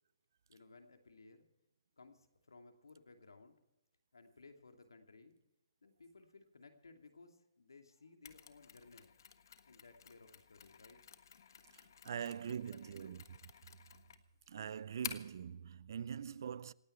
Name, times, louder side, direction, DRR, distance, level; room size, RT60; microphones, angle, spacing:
voice 1, 0.5-1.5 2.0-3.6 4.1-5.4 5.8-9.1 9.7-11.0 12.0-13.1, left 3 dB, 85° left, 2.6 m, -60 dB
Mechanisms, 8.2-15.4, left 7 dB, 60° left, 1.5 m, -52 dB
voice 2, 11.7-13.2 13.6-13.7 14.5-16.7, right 8 dB, 60° right, 0.6 m, -43 dB
27.5 x 9.6 x 4.5 m
hypercardioid pair, 145°, 2 cm